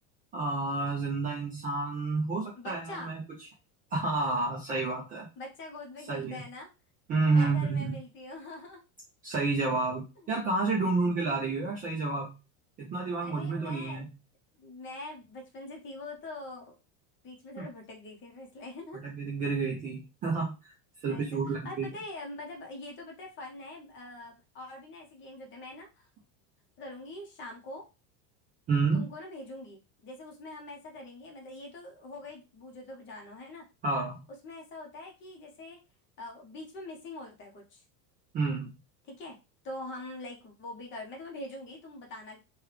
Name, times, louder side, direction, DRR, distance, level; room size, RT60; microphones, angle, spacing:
voice 1, 0.3-3.2 3.9-5.3 6.1-6.4 7.1-8.0 9.2-12.4 12.8-14.1 17.6-17.7 18.9-20.7 21.0-21.9 28.7-29.1 33.8-34.2 38.3-38.7, right 3 dB, 20° right, -3 dB, 0.4 m, -30 dB
voice 2, 2.5-3.1 5.4-6.7 7.3-8.8 10.2-10.3 10.8-11.2 13.2-14.1 14.6-16.8 17.2-19.0 21.1-26.1 26.8-27.8 28.9-33.6 34.4-35.8 36.2-37.8 39.1-39.4 39.6-42.4, left 2 dB, 25° left, 1 dB, 0.8 m, -44 dB
3.2 x 2.3 x 3.2 m, 0.28 s
supercardioid pair, 160°, 43 cm